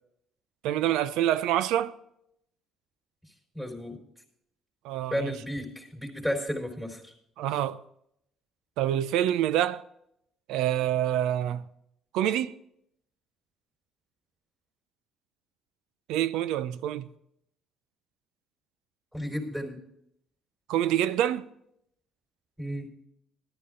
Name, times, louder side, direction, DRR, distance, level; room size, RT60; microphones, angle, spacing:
voice 1, 0.6-1.9 4.8-5.3 7.4-7.8 8.8-9.8 10.5-11.6 12.1-12.5 16.1-17.1 20.7-21.5, right 11 dB, 80° right, 0.5 m, -26 dB
voice 2, 3.5-4.0 5.1-7.1 19.1-19.8 22.6-22.9, equal, 10° right, 4.0 m, -33 dB
14.0 x 12.0 x 3.8 m
supercardioid pair, 90°, 0 cm